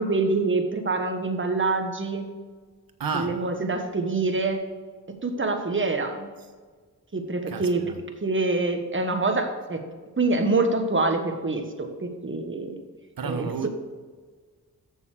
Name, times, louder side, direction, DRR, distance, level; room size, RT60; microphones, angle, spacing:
voice 1, 0.0-2.3 3.1-4.6 5.2-6.3 7.1-7.8 8.2-9.8 10.2-12.8 13.2-13.5, right 3 dB, 30° right, 5 dB, 1.4 m, -25 dB
voice 2, 3.0-3.6 7.5-8.0 13.2-13.7, right 5 dB, 60° right, 8 dB, 1.1 m, -31 dB
6.8 x 6.7 x 6.6 m, 1.5 s
cardioid pair, 45°, 39 cm